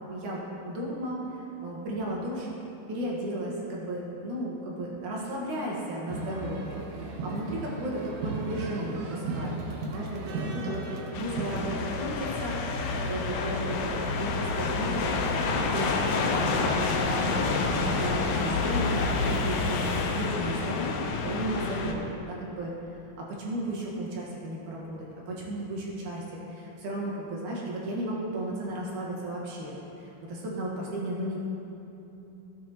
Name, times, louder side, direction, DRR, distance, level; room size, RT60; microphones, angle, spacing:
voice 1, 0.1-2.5 2.9-9.6 9.9-15.1 15.5-22.7 23.2-31.4, right 1 dB, 60° right, -4 dB, 2.8 m, -34 dB
sound 1, 6.1-11.6, right 3 dB, 85° right, 1.4 m, -35 dB
sound 2, 11.1-21.9, left 4 dB, 75° left, 1.8 m, -28 dB
16.5 x 8.7 x 3.0 m, 3.0 s
omnidirectional pair, 4.3 m